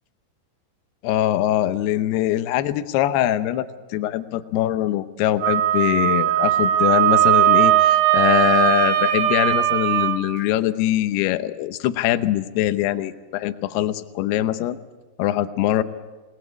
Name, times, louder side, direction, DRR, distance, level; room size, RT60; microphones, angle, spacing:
voice 1, 1.0-14.8 15.2-15.8, left 13 dB, 75° left, 12 dB, 2.8 m, -22 dB
Wind instrument woodwind instrument, 5.4-10.2, right 12 dB, 65° right, 2.8 m, -18 dB
29.0 x 19.5 x 8.3 m, 1.3 s
omnidirectional pair, 5.1 m